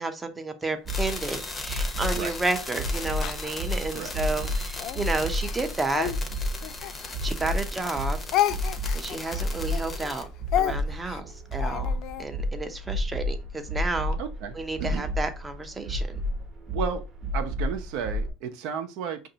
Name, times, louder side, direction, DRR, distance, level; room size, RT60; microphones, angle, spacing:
voice 1, 0.0-6.1 7.2-8.2 8.9-10.3 10.6-14.2 14.5-16.2, right 3 dB, 15° right, 0.7 m, -31 dB
sound 1, 0.8-18.3, left 1 dB, 30° right, 1.0 m, -31 dB
sound 2, 0.9-10.2, left 3 dB, 20° left, 0.8 m, -38 dB
Speech, 1.1-4.2 4.8-7.6 7.8-12.3, left 12 dB, 55° left, 0.3 m, -32 dB
voice 2, 14.2-15.1 16.7-17.0 17.3-19.2, right 7 dB, 65° right, 0.7 m, -33 dB
5.1 x 2.6 x 2.8 m
supercardioid pair, 120°, 0 cm